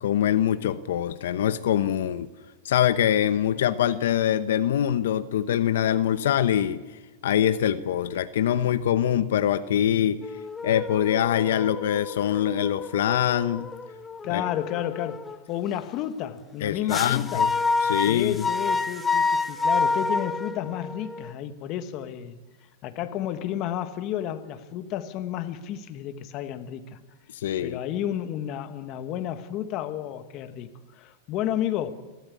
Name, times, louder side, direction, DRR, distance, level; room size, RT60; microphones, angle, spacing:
voice 1, 0.0-2.3 2.6-6.8 7.2-10.2 10.6-13.7 14.3-14.4 16.6-17.5 17.8-18.4 27.3-27.8, left 10 dB, 80° left, 0.8 m, -24 dB
sound 1, 10.2-15.4 16.9-21.3, left 4 dB, 10° left, 0.7 m, -28 dB
voice 2, 14.2-17.5 18.1-22.4 22.8-27.0 27.6-31.9, left 11 dB, 35° left, 1.5 m, -31 dB
29.5 x 13.0 x 8.5 m
supercardioid pair, 150°, 0 cm